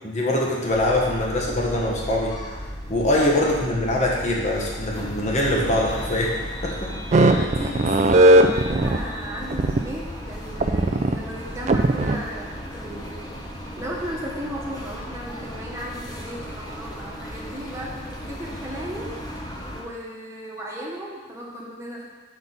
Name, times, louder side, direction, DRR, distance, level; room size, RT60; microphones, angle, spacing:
voice 1, 0.0-2.3 2.9-6.3 6.6-6.9, left 1 dB, 35° left, -3 dB, 1.2 m, -23 dB
sound 1, 0.7-19.8, equal, 20° left, 0.8 m, -35 dB
voice 2, 7.1-13.3 13.8-19.2 19.7-22.1, equal, 15° right, -4 dB, 1.2 m, -35 dB
sound 2, 7.1-9.0 9.5-9.8 10.6-11.1 11.7-12.2, right 2 dB, 35° right, 0.3 m, -16 dB
7.0 x 5.8 x 4.0 m, 1.3 s
head